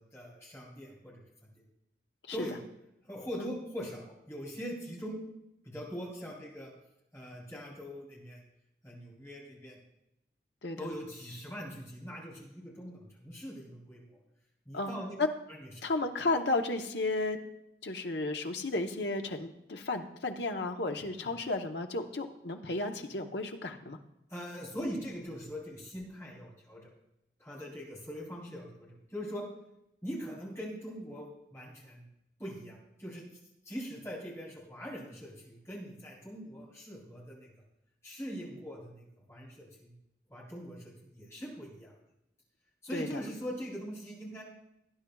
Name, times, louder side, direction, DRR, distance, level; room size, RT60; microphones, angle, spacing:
voice 1, 0.0-1.5 2.3-2.6 3.0-5.2 5.6-6.7 7.1-8.4 8.8-9.8 10.8-14.2 14.7-15.2 15.5-15.7 21.2-21.3 24.3-26.9 27.4-29.5 30.0-32.0 32.4-33.2 33.7-37.5 38.0-39.9 40.3-41.9 42.8-44.4, equal, 15° left, -4 dB, 3.7 m, -42 dB
voice 2, 15.8-17.4 17.8-24.0 42.9-43.2, left 2 dB, 80° left, 4 dB, 1.0 m, -33 dB
19.0 x 10.0 x 2.3 m, 0.85 s
head